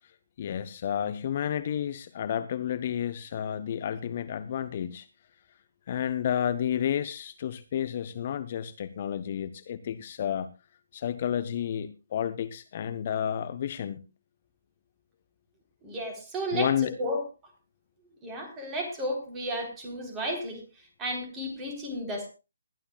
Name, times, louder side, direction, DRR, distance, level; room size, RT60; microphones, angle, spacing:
voice 1, 0.4-5.1 5.9-10.5 10.9-14.0 16.5-16.9, left 9 dB, 35° left, 13 dB, 0.8 m, -31 dB
voice 2, 15.8-16.7 17.0-17.2 18.2-22.3, equal, 15° right, 2 dB, 4.0 m, -33 dB
21.0 x 11.5 x 2.4 m, 0.29 s
figure-of-eight pair, 140°, 0 cm